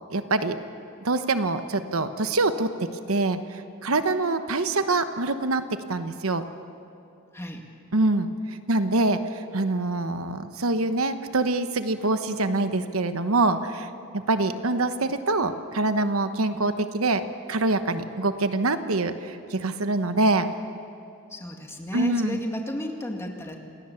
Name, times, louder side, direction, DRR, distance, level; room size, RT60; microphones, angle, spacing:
voice 1, 0.1-0.6 1.0-2.7 3.1-5.6 5.9-6.4 7.9-20.5 21.9-22.4, right 2 dB, 85° right, 9 dB, 1.1 m, -25 dB
voice 2, 21.3-23.6, left 1 dB, 15° left, 2 dB, 2.2 m, -33 dB
27.0 x 18.0 x 7.1 m, 2.8 s
head